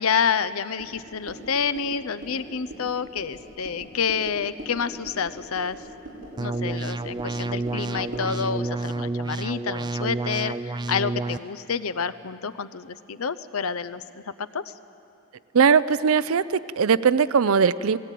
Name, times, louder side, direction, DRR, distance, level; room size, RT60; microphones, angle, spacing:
voice 1, 0.0-5.8 6.1-14.0 14.5-14.6, left 6 dB, 85° left, 14 dB, 0.7 m, -28 dB
sound 1, 0.8-8.4, right 1 dB, 45° right, 7.3 m, -42 dB
sound 2, 6.4-11.4, right 3 dB, 20° right, 0.4 m, -29 dB
voice 2, 15.5-18.0, right 6 dB, 80° right, 17 dB, 0.5 m, -20 dB
19.5 x 18.0 x 9.2 m, 2.8 s
head